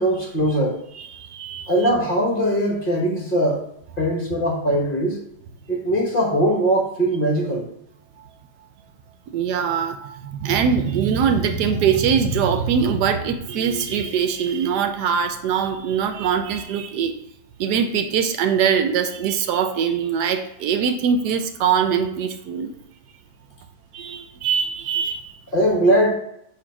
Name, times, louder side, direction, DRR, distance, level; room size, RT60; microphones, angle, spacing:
voice 1, 0.0-0.8 1.7-3.6 4.0-5.2 5.7-7.6 25.5-26.1, right 1 dB, 35° left, -1 dB, 1.0 m, -20 dB
voice 2, 0.9-1.7 9.3-17.1 17.6-22.7 23.9-25.3, right 7 dB, 80° right, 8 dB, 1.2 m, -22 dB
6.8 x 2.8 x 5.1 m, 0.76 s
omnidirectional pair, 1.8 m